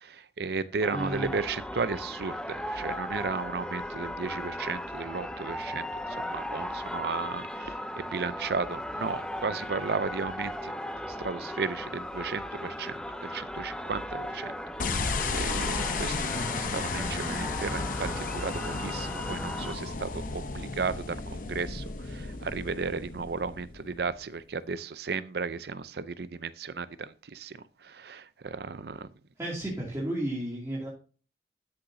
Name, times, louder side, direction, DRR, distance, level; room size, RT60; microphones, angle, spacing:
voice 1, 0.1-10.7 11.2-14.5 14.9-15.0 15.3-27.6 27.8-29.1, right 4 dB, 60° right, 0.5 m, -34 dB
sound 1, 0.8-19.7, left 1 dB, 5° left, 0.5 m, -37 dB
voice 2, 0.9-1.3 29.4-30.9, right 1 dB, 15° right, 2.5 m, -32 dB
sound 2, 14.8-24.2, left 4 dB, 50° left, 0.8 m, -33 dB
12.5 x 7.0 x 2.7 m
head